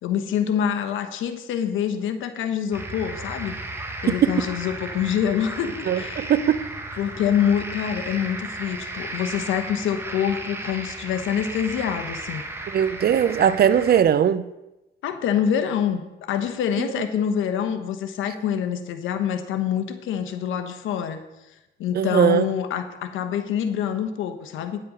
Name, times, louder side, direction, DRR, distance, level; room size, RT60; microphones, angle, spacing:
voice 1, 0.0-3.6 4.0-6.3 7.0-12.4 15.0-21.2 21.8-24.9, left 8 dB, 85° left, 1.0 m, -26 dB
sound 1, 2.7-14.0, right 2 dB, 10° right, 1.5 m, -35 dB
voice 2, 5.9-6.6 12.7-14.5 16.8-16.9 21.9-22.5, right 9 dB, 50° right, 0.6 m, -20 dB
9.9 x 7.7 x 5.2 m
cardioid pair, 90°, 20 cm